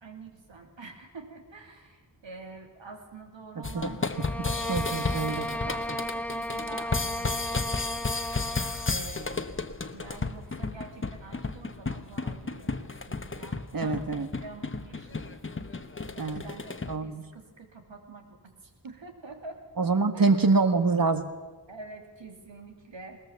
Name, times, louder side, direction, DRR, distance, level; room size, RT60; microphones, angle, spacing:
voice 1, 0.0-8.1 8.9-9.6 9.9-15.4 16.1-19.6 20.1-20.4 21.7-23.2, right 3 dB, 85° right, 3 dB, 3.0 m, -46 dB
sound 1, 3.6-17.0, left 3 dB, 30° left, 1.1 m, -33 dB
voice 2, 3.6-3.9 4.4-5.5 13.7-14.3 16.2-16.4 16.9-17.2 19.8-21.2, right 4 dB, 50° right, 9 dB, 1.6 m, -25 dB
sound 2, 4.1-9.0, equal, 5° left, 0.5 m, -34 dB
20.5 x 19.5 x 7.2 m, 1.3 s
wide cardioid pair, 75°, 44 cm